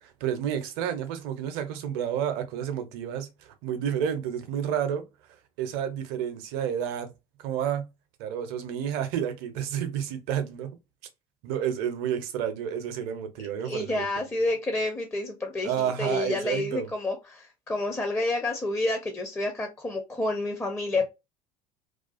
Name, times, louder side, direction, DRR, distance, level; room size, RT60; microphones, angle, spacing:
voice 1, 0.0-5.0 5.6-7.1 7.4-7.9 8.2-10.8 11.4-14.1 15.6-16.9, right 9 dB, 55° right, 0.6 m, -30 dB
voice 2, 13.6-21.0, left 2 dB, 10° left, 0.5 m, -29 dB
2.4 x 2.3 x 2.3 m
figure-of-eight pair, 65°, 19 cm